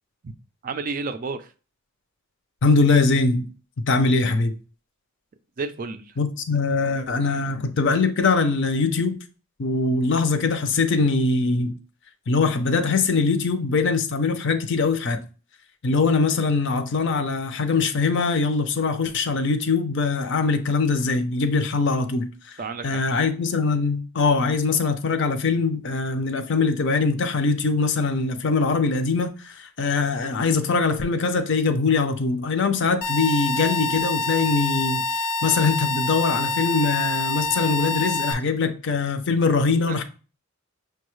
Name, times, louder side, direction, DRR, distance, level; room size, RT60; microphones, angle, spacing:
voice 1, 0.6-1.4 5.6-6.1 22.6-23.0 39.9-40.0, right 4 dB, 40° right, 0.3 m, -31 dB
voice 2, 2.6-3.5 3.9-4.5 6.2-9.2 9.6-11.7 12.3-15.2 15.8-22.6 22.8-35.1 35.4-40.0, left 4 dB, 55° left, 0.5 m, -22 dB
sound 1, 33.0-38.3, left 2 dB, 85° left, 0.8 m, -26 dB
6.1 x 2.3 x 3.1 m
head